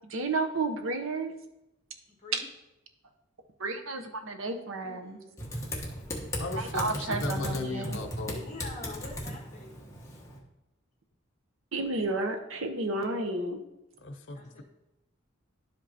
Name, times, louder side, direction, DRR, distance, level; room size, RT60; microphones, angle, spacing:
voice 1, 0.1-1.3 3.6-5.2 6.6-8.0 11.7-13.6, right 2 dB, 85° right, 6 dB, 0.9 m, -32 dB
voice 2, 4.8-5.4 8.1-9.8 14.3-14.6, left 2 dB, 35° left, -3 dB, 1.4 m, -45 dB
Typing, 5.4-10.4, equal, 15° left, 1.2 m, -37 dB
voice 3, 6.3-8.4 14.0-14.6, left 2 dB, 65° left, 6 dB, 0.7 m, -36 dB
11.5 x 5.2 x 2.9 m, 0.92 s
head